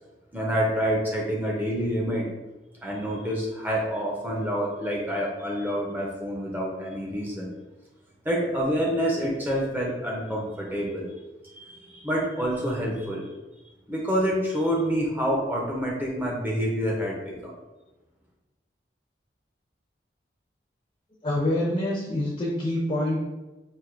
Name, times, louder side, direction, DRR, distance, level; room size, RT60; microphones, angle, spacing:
voice 1, 0.3-2.3 2.8-7.5 8.2-11.1 11.5-13.3 13.9-17.5, equal, 10° right, -3 dB, 0.6 m, -27 dB
voice 2, 21.2-23.2, left 1 dB, 30° left, -4 dB, 0.6 m, -26 dB
4.5 x 2.6 x 2.5 m, 1.1 s
head